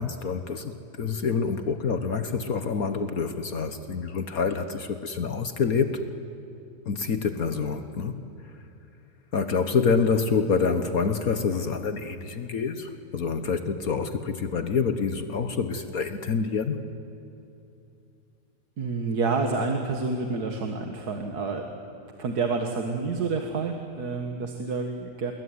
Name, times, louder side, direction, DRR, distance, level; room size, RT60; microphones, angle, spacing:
voice 1, 0.0-6.0 6.9-8.2 9.3-16.8, left 5 dB, 60° left, 9 dB, 1.5 m, -27 dB
voice 2, 18.8-21.7 22.2-25.3, right 4 dB, 65° right, 4 dB, 2.1 m, -28 dB
27.0 x 22.0 x 9.6 m, 2.7 s
omnidirectional pair, 1.8 m